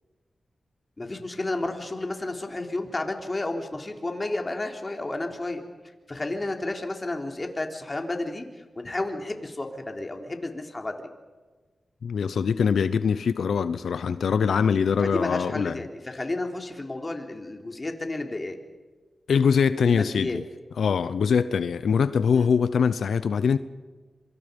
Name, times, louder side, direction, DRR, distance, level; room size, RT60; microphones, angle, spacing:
voice 1, 1.0-5.6 6.1-11.1 15.1-18.6 19.9-20.4 22.3-22.5, left 2 dB, 30° left, 3.6 m, -32 dB
voice 2, 12.0-15.8 19.3-20.4 20.8-23.6, left 6 dB, 90° left, 0.7 m, -23 dB
26.5 x 25.5 x 5.3 m
cardioid pair, 65°, 0 cm